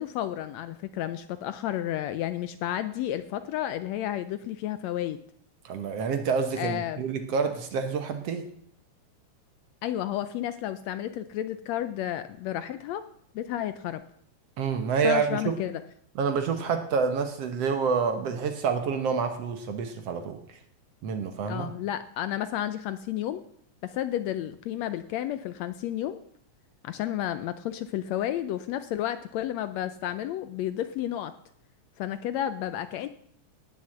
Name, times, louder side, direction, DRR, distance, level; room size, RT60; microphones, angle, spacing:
voice 1, 0.0-5.2 6.6-7.0 9.8-13.0 13.4-14.0 15.0-15.8 21.5-23.4 23.8-26.2 26.8-31.3 32.0-33.1, left 12 dB, 75° left, 11 dB, 1.7 m, -31 dB
voice 2, 5.7-8.5 14.6-15.6 16.2-20.6 21.0-21.7, right 5 dB, 60° right, 7 dB, 1.9 m, -28 dB
18.5 x 6.8 x 7.8 m, 0.67 s
omnidirectional pair, 3.5 m